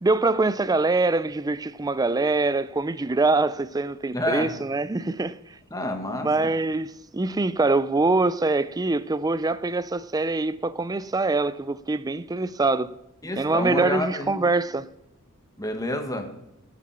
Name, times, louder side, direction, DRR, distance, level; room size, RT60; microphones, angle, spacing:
voice 1, 0.0-5.4 6.2-12.9 13.3-14.9, right 3 dB, 15° right, 0.4 m, -24 dB
voice 2, 4.1-4.5 5.7-6.5 13.2-14.3 15.6-16.3, left 1 dB, 15° left, 1.8 m, -29 dB
18.0 x 8.2 x 4.4 m
head